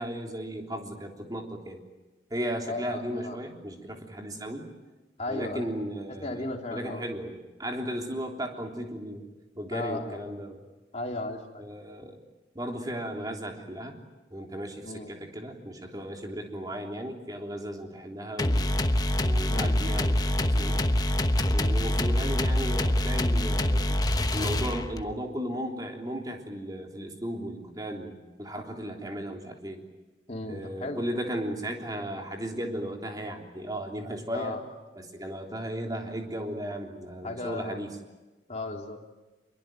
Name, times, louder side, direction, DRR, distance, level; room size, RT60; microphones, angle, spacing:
voice 1, 0.0-1.8 2.3-4.7 5.3-9.3 9.6-10.6 11.6-12.2 12.6-14.0 14.3-18.7 19.2-20.9 21.5-24.0 24.3-29.8 30.5-34.6 35.0-37.9, equal, 20° right, 2 dB, 3.4 m, -35 dB
voice 2, 2.7-3.4 5.2-5.7 6.2-7.0 9.7-10.2 10.9-11.6 14.8-15.1 19.5-19.8 30.3-31.0 34.3-34.6 37.2-37.8 38.5-39.0, left 2 dB, 35° left, 1 dB, 3.3 m, -35 dB
sound 1, 18.4-25.1, left 1 dB, 20° left, 1.1 m, -25 dB
25.5 x 22.5 x 9.2 m, 1.2 s
head